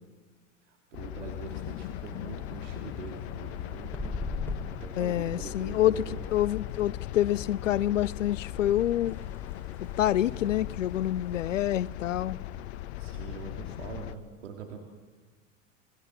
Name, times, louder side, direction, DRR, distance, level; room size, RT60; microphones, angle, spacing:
sound 1, 0.9-14.1, left 13 dB, 60° left, 1.1 m, -39 dB
voice 1, 0.9-4.1 4.8-6.2 13.0-14.8, right 6 dB, 70° right, 3.2 m, -43 dB
sound 2, 1.5-12.2, left 3 dB, 5° left, 5.4 m, -44 dB
voice 2, 5.0-6.0 6.3-9.2 10.0-12.4, left 12 dB, 75° left, 0.6 m, -27 dB
28.5 x 20.5 x 7.3 m
figure-of-eight pair, 80°, 38 cm